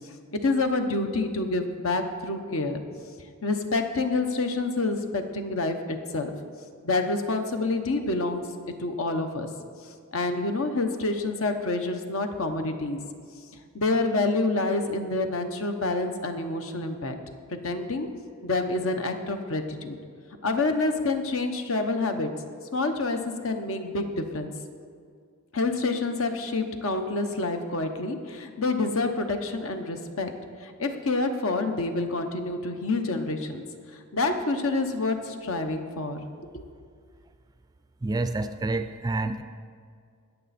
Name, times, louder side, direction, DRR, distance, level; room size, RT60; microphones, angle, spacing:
voice 1, 0.3-2.8 3.4-6.3 6.8-8.4 8.8-9.5 10.1-13.0 13.7-17.2 17.5-18.1 18.4-20.0 20.4-22.3 22.7-24.5 25.5-30.3 30.6-33.6 34.1-36.2, left 3 dB, 70° left, 6 dB, 1.0 m, -27 dB
voice 2, 38.0-39.4, right 2 dB, 20° right, 10 dB, 0.4 m, -28 dB
20.0 x 6.9 x 4.3 m, 2.2 s
head